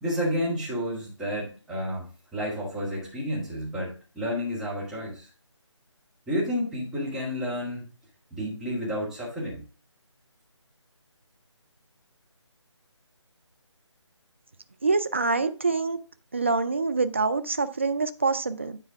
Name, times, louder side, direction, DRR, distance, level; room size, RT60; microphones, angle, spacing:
voice 1, 0.0-5.3 6.3-7.8 8.3-9.6, equal, 5° right, 1.4 m, -31 dB
voice 2, 14.8-16.0 16.3-18.8, right 4 dB, 25° right, 0.3 m, -25 dB
9.7 x 4.3 x 3.5 m
figure-of-eight pair, 160°, 16 cm